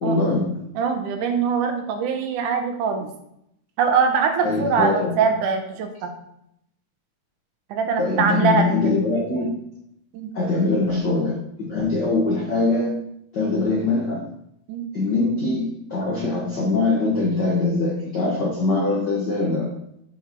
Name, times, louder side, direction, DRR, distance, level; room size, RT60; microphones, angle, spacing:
voice 1, 0.0-0.7 4.4-5.3 8.0-9.6 10.3-13.0 13.3-14.3 14.9-19.7, left 3 dB, 70° left, -2 dB, 1.0 m, -23 dB
voice 2, 0.8-3.1 3.8-6.1 7.7-9.0 10.1-10.3 14.7-14.9, right 5 dB, 80° right, 5 dB, 2.3 m, -22 dB
7.4 x 6.3 x 3.0 m, 0.77 s
omnidirectional pair, 3.6 m